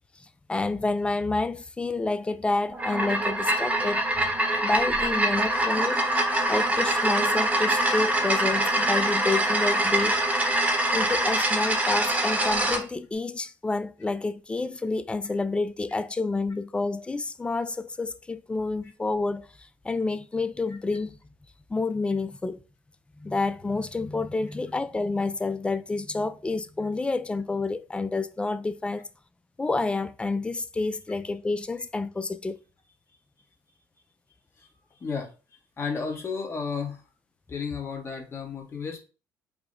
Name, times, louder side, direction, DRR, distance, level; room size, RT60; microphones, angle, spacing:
voice 1, 0.5-4.0 4.6-6.0 6.5-10.2 10.9-19.5 19.8-21.2 21.7-22.6 23.2-29.1 29.6-32.6, left 3 dB, 15° left, 0.3 m, -29 dB
sound 1, 2.7-12.8, right 1 dB, 20° right, 0.9 m, -24 dB
voice 2, 35.0-35.3 35.8-37.0 37.5-39.0, left 5 dB, 35° left, 1.2 m, -32 dB
4.9 x 2.1 x 3.8 m
cardioid pair, 100°, 8 cm